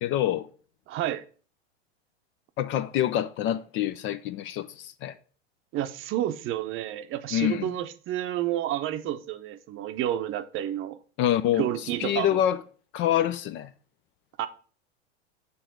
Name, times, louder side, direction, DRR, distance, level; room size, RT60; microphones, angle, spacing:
voice 1, 0.0-0.5 2.6-5.1 7.3-7.7 11.2-11.7 12.0-12.6 12.9-13.7, left 11 dB, 40° left, 0.5 m, -26 dB
voice 2, 0.9-1.2 5.7-11.0 11.6-12.4 14.4-14.5, right 12 dB, 40° right, 0.7 m, -30 dB
6.9 x 3.4 x 6.2 m
hypercardioid pair, 95°, 32 cm